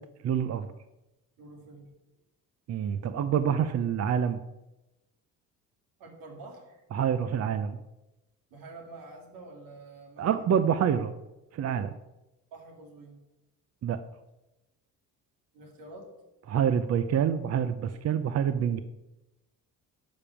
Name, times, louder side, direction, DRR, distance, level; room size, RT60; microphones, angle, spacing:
voice 1, 0.2-0.7 2.7-4.4 6.9-7.8 10.2-11.1 11.5-11.9 13.8-14.0 16.5-18.8, right 8 dB, 50° right, 11 dB, 0.7 m, -27 dB
voice 2, 1.4-1.9 6.0-6.8 8.5-10.3 12.5-13.2 15.5-16.1, right 2 dB, 85° right, 2 dB, 3.1 m, -47 dB
12.0 x 5.3 x 7.3 m, 0.98 s
supercardioid pair, 85°, 33 cm